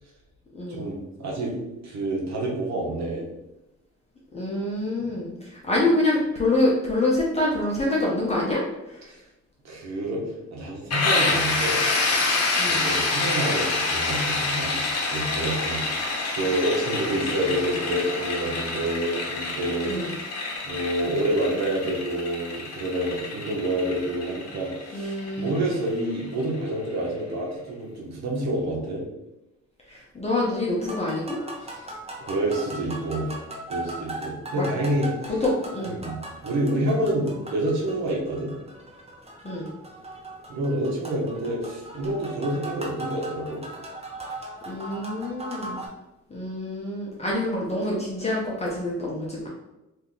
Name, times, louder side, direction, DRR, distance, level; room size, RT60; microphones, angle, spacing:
voice 1, 0.7-1.5 1.8-3.2 9.1-9.2 9.6-10.2 10.5-11.8 12.7-14.8 15.1-16.1 16.3-20.3 20.6-29.1 31.6-31.8 32.2-33.4 33.7-35.3 35.8-38.5 40.5-43.6, right 1 dB, 60° right, -2 dB, 1.2 m, -28 dB
voice 2, 4.3-8.6 8.9-9.1 12.6-12.8 19.8-20.2 24.9-25.5 29.9-31.4 34.6-34.7 35.4-35.9 39.4-39.7 44.7-45.8 46.3-49.5, left 1 dB, 20° left, -5 dB, 0.8 m, -26 dB
sound 1, 10.9-26.5, left 3 dB, 55° left, 1.0 m, -27 dB
sound 2, 30.8-45.9, right 2 dB, 20° right, 0.9 m, -39 dB
2.7 x 2.7 x 3.8 m, 0.94 s
cardioid pair, 90°, 30 cm